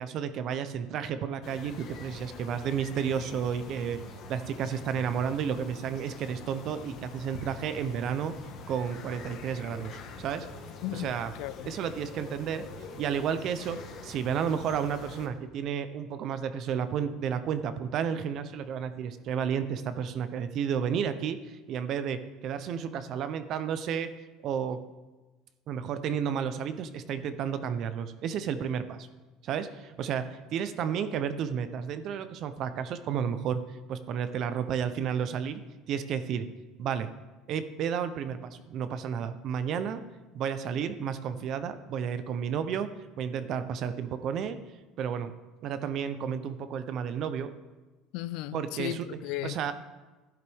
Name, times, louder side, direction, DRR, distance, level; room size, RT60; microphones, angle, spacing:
voice 1, 0.0-4.0 4.3-8.3 8.7-10.5 10.9-11.3 11.6-12.6 13.0-13.8 14.0-24.1 24.4-24.8 25.7-29.1 29.4-35.6 35.9-36.5 36.8-37.1 37.5-40.0 40.3-44.6 45.0-45.3 45.6-47.5 48.5-49.1 49.4-49.7, right 8 dB, 40° right, 0.7 m, -32 dB
sound 1, 1.4-15.3, left 3 dB, 45° left, 1.3 m, -45 dB
voice 2, 10.8-11.7 48.1-49.6, left 14 dB, 65° left, 0.3 m, -36 dB
12.5 x 10.5 x 3.5 m
cardioid pair, 160°, 0 cm